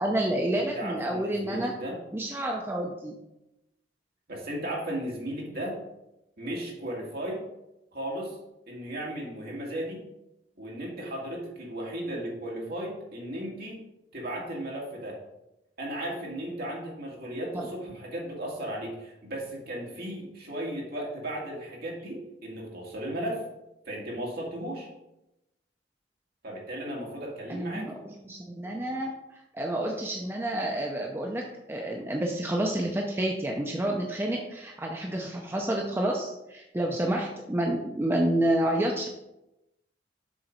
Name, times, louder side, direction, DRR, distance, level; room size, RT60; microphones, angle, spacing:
voice 1, 0.0-1.7 2.1-3.1 17.5-17.7 27.5-29.1 29.5-39.1, right 1 dB, 15° right, 0 dB, 0.5 m, -29 dB
voice 2, 0.5-2.0 4.3-5.8 6.4-7.4 7.9-8.4 8.7-10.0 10.6-13.8 14.1-15.2 15.8-23.4 23.9-24.9 26.4-27.9, right 1 dB, 55° right, -3 dB, 2.1 m, -35 dB
7.0 x 3.9 x 5.2 m, 0.91 s
head